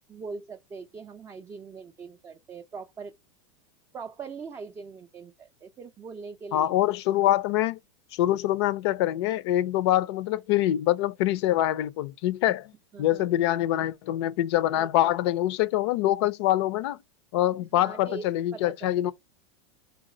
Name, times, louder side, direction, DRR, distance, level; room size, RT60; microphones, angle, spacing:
voice 1, 0.0-3.2 3.9-6.8 12.9-13.3 14.7-15.1 17.6-19.1, right 5 dB, 15° right, 0.4 m, -42 dB
voice 2, 6.5-7.8 8.1-12.7 13.0-17.0 17.3-19.1, left 13 dB, 65° left, 0.5 m, -25 dB
4.0 x 2.3 x 3.7 m
supercardioid pair, 125°, 16 cm